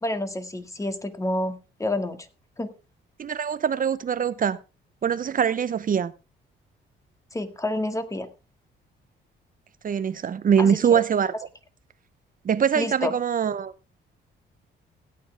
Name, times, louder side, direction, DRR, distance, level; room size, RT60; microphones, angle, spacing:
voice 1, 0.0-2.3 2.6-2.7 7.3-8.3 10.6-11.0 12.8-13.1, left 1 dB, 15° left, 1.9 m, -29 dB
voice 2, 3.2-4.6 5.0-6.1 9.8-11.3 12.4-13.7, right 7 dB, 45° right, 0.8 m, -23 dB
16.5 x 9.6 x 3.4 m
cardioid pair, 90°, 20 cm